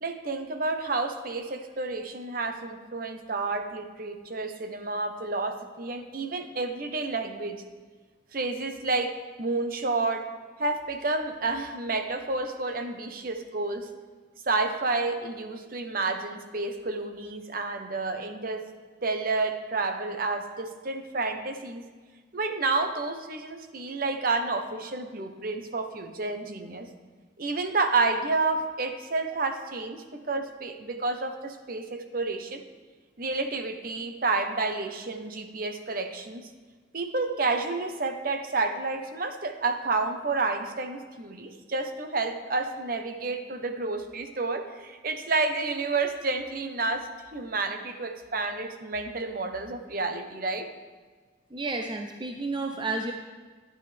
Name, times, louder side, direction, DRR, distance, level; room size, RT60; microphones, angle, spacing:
voice 1, 0.0-7.6 8.3-10.3 10.6-13.9 14.5-18.7 19.0-21.8 22.3-26.9 27.4-32.6 33.2-36.5 36.9-50.7, right 3 dB, 50° right, 7 dB, 0.9 m, -30 dB
voice 2, 51.5-53.1, right 3 dB, 25° right, 4 dB, 0.5 m, -31 dB
12.0 x 10.0 x 3.4 m, 1.4 s
head